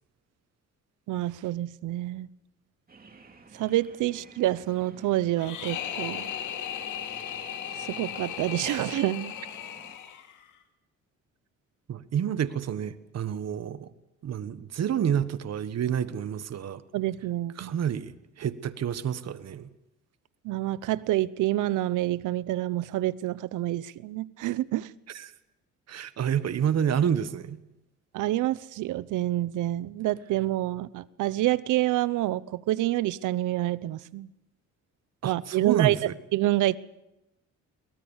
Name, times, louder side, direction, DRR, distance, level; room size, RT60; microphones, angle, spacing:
voice 1, 1.1-2.3 3.5-6.2 7.8-9.3 16.9-17.7 20.4-24.9 28.1-34.3 35.2-36.0 36.3-36.8, right 15 dB, 85° right, 0.7 m, -27 dB
sound 1, 2.9-10.0, right 3 dB, 30° right, 3.0 m, -51 dB
sound 2, 5.4-10.5, left 10 dB, 85° left, 2.4 m, -36 dB
voice 2, 11.9-13.9 14.2-16.8 17.6-19.7 25.1-25.3 25.9-27.6 35.2-36.1, right 9 dB, 60° right, 1.3 m, -29 dB
23.0 x 19.0 x 7.2 m
cardioid pair, 90°, 30 cm